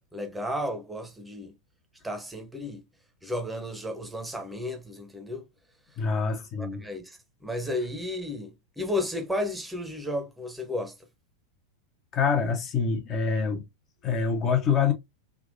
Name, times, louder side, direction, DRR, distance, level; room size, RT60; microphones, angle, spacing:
voice 1, 0.1-1.5 2.0-2.8 3.2-5.4 6.6-10.9, left 1 dB, 5° right, 0.9 m, -33 dB
voice 2, 6.0-6.8 12.1-13.6 14.0-14.9, left 6 dB, 30° left, 0.8 m, -25 dB
3.5 x 2.8 x 2.6 m
figure-of-eight pair, 90°, 0 cm